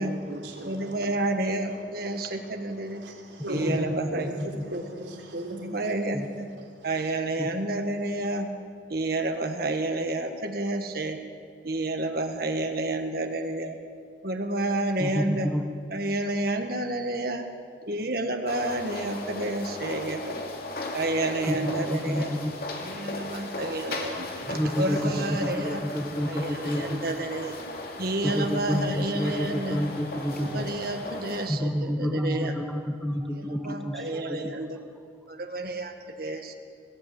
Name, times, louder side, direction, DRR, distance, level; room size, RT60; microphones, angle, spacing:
voice 1, 0.0-1.1 1.5-5.9 7.0-7.2, equal, 90° right, 1 dB, 3.8 m, -38 dB
voice 2, 0.6-3.0 3.5-4.3 5.5-6.5 6.8-8.5 8.9-11.2 11.6-13.7 14.2-15.5 15.9-17.5 17.9-20.3 20.9-22.3 22.8-25.8 26.3-27.6 28.0-29.8 30.3-32.5 33.4-34.8 35.3-36.5, right 2 dB, 60° right, 5 dB, 1.7 m, -30 dB
voice 3, 15.0-15.6 21.4-22.5 24.5-27.1 28.2-30.6 31.5-34.5, equal, ahead, 4 dB, 1.2 m, -29 dB
sound 1, 18.5-31.5, left 2 dB, 55° left, 2.8 m, -37 dB
20.5 x 16.0 x 9.5 m, 2.2 s
head